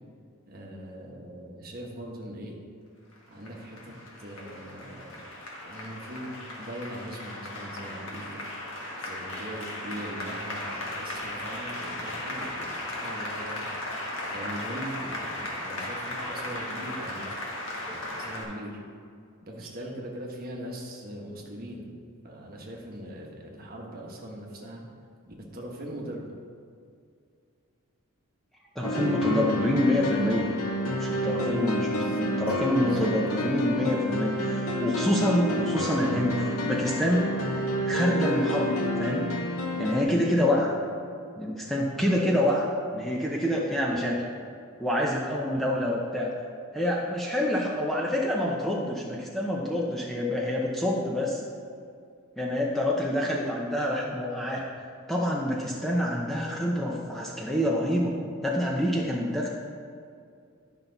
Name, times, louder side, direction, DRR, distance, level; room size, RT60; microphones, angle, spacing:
voice 1, 0.5-2.6 3.3-3.9 4.2-5.3 5.6-8.5 8.9-13.7 14.3-17.4 17.9-18.8 19.4-21.9 22.2-24.8 25.3-26.3 31.8-33.2, equal, 45° right, -1 dB, 1.3 m, -40 dB
Applause, 3.1-18.4, left 1 dB, 60° left, 1.6 m, -36 dB
sound 1, 28.8-40.0, equal, 85° left, 0.9 m, -29 dB
voice 2, 28.8-30.5 30.9-37.3 37.8-39.2 39.8-40.7 41.4-42.7 42.9-44.2 44.8-46.3 46.7-51.4 52.4-54.6 55.1-58.1 58.4-59.5, left 1 dB, ahead, -4 dB, 0.7 m, -26 dB
11.0 x 5.8 x 4.0 m, 2.3 s
head